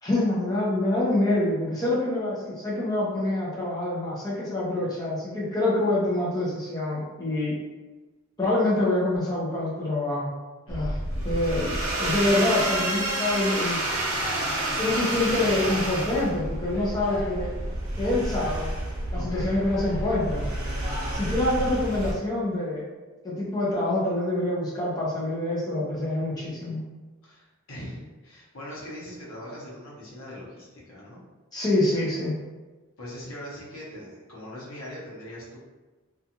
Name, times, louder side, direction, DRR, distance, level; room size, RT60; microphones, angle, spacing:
voice 1, 0.0-7.5 8.4-10.3 10.7-11.0 11.2-13.8 14.8-17.5 18.0-18.7 19.1-20.4 21.1-22.8 23.2-26.8 31.5-32.3, left 2 dB, 15° left, -7 dB, 0.7 m, -26 dB
voice 2, 10.7-11.4 19.1-19.6 27.2-31.2 33.0-35.6, equal, 75° left, -6 dB, 0.9 m, -41 dB
sound 1, 10.7-22.1, right 1 dB, 75° right, 0.6 m, -29 dB
sound 2, 13.7-14.8 15.2-21.1, equal, 35° left, 1.4 m, -42 dB
2.4 x 2.3 x 2.8 m, 1.2 s
head